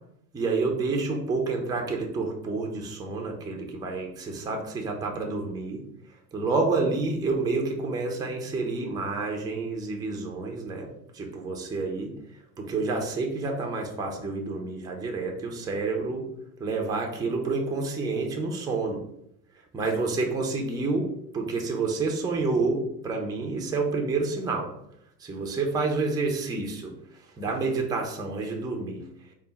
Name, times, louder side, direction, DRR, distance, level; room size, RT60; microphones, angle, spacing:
voice 1, 0.3-5.8 6.3-12.1 12.6-16.3 16.6-19.0 19.7-24.7 25.2-26.9 27.4-29.1, right 3 dB, 10° right, 1 dB, 0.5 m, -29 dB
3.5 x 2.2 x 3.9 m, 0.76 s
hypercardioid pair, 85°, 49 cm